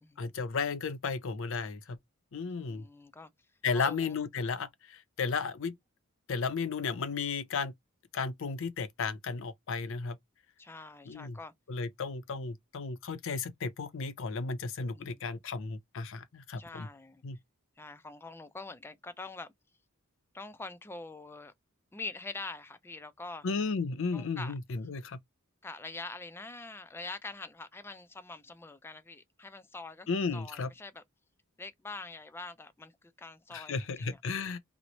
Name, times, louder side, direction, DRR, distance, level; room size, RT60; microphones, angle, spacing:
voice 1, 0.2-2.0 2.3-2.8 3.6-5.7 6.3-7.7 8.1-10.2 11.1-11.4 11.7-16.9 17.2-17.4 23.4-25.2 30.1-30.7 33.5-34.6, left 4 dB, 65° left, 0.5 m, -34 dB
voice 2, 2.5-3.3 3.7-4.1 10.6-11.5 14.9-15.2 16.6-17.2 17.8-19.5 20.3-21.5 21.9-23.4 24.1-24.5 25.6-31.0 31.6-34.2, left 3 dB, 10° left, 0.3 m, -44 dB
3.0 x 2.1 x 3.9 m
head